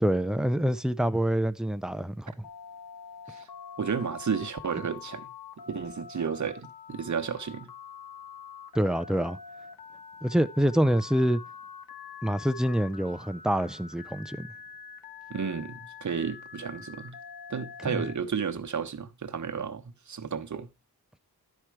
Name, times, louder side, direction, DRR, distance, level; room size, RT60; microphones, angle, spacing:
voice 1, 0.0-2.3 8.7-9.4 10.2-11.4 12.2-14.5 17.9-18.0, equal, ahead, 0.5 m, -26 dB
Telephone, 2.4-18.1, left 6 dB, 70° left, 1.3 m, -45 dB
voice 2, 3.8-5.3 5.7-7.7 15.3-17.2 17.5-20.7, right 6 dB, 50° right, 1.0 m, -32 dB
11.5 x 4.6 x 4.7 m
cardioid pair, 70°, 37 cm